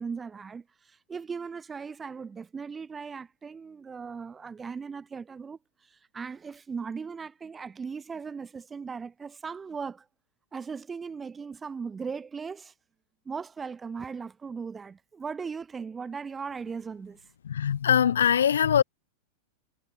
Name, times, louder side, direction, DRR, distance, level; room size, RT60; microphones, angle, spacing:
voice 1, 0.0-10.1 10.5-12.7 13.2-17.2, right 5 dB, 15° right, 0.8 m, -38 dB
voice 2, 17.4-18.8, left 8 dB, 65° left, 0.5 m, -22 dB
figure-of-eight pair, 90°, 0 cm